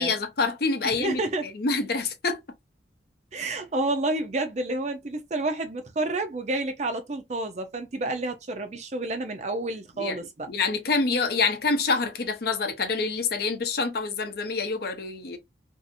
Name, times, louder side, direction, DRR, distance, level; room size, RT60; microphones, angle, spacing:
voice 1, 0.0-1.2 1.5-2.4 10.0-10.2 10.5-15.4, left 4 dB, 55° left, 0.6 m, -26 dB
voice 2, 0.8-1.5 3.3-10.5, right 2 dB, 35° right, 0.5 m, -29 dB
2.7 x 2.5 x 2.5 m
head